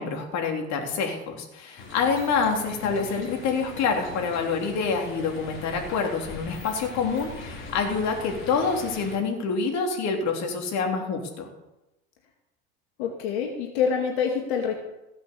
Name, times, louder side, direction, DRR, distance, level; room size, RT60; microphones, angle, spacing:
voice 1, 0.0-11.5, left 5 dB, 60° left, 3 dB, 3.3 m, -27 dB
sound 1, 1.8-9.2, left 2 dB, 40° left, 4.7 m, -41 dB
voice 2, 13.0-14.8, left 6 dB, 85° left, 1 dB, 2.3 m, -27 dB
16.0 x 8.3 x 6.8 m, 0.98 s
supercardioid pair, 90°, 31 cm